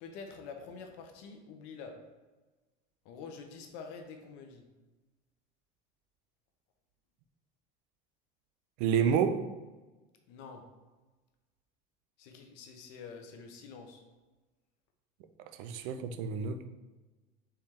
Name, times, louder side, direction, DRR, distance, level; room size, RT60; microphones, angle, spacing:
voice 1, 0.0-1.9 3.0-4.6 10.3-10.6 12.2-14.0, left 5 dB, 65° left, 0.8 m, -47 dB
voice 2, 8.8-9.5 15.5-16.7, right 7 dB, 65° right, 0.4 m, -29 dB
4.5 x 3.2 x 3.6 m
cardioid pair, 160°, 19 cm